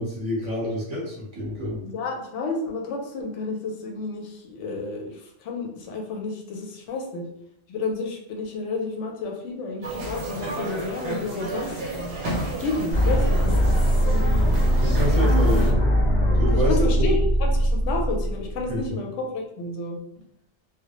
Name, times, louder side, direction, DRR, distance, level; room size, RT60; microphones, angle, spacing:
voice 1, 0.0-1.8 14.7-15.8 16.4-17.1 18.7-18.9, equal, 35° right, -5 dB, 0.8 m, -27 dB
voice 2, 1.8-7.3 7.7-11.7 12.6-13.6 14.0-14.5 15.1-15.7 16.5-20.0, left 3 dB, 90° left, 1 dB, 0.9 m, -31 dB
sound 1, 9.8-15.7, right 2 dB, 65° right, 0.7 m, -32 dB
sound 2, 12.9-18.9, equal, 45° left, 0.8 m, -21 dB
2.2 x 2.1 x 2.8 m, 0.74 s
omnidirectional pair, 1.2 m